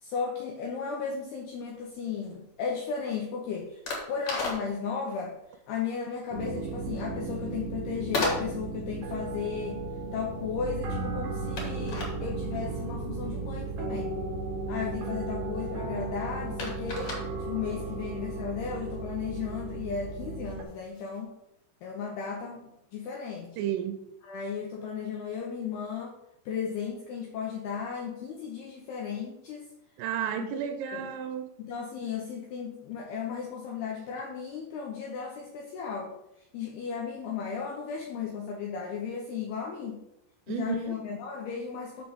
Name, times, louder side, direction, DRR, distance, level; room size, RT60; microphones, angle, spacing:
voice 1, 0.0-5.4 5.7-9.8 10.1-14.1 14.7-17.1 17.5-21.3 21.8-23.5 24.2-26.2 26.5-29.7 30.4-31.1 31.6-36.1 36.5-40.0 40.5-42.1, left 6 dB, 75° left, 0 dB, 2.4 m, -35 dB
sound 1, 1.5-21.2, left 2 dB, 45° left, 2.6 m, -39 dB
sound 2, 6.3-20.6, right 3 dB, 65° right, 2.1 m, -35 dB
voice 2, 23.6-24.0 30.0-31.4 40.5-41.0, right 10 dB, 85° right, 6 dB, 3.3 m, -32 dB
7.4 x 4.5 x 6.9 m, 0.82 s
omnidirectional pair, 5.7 m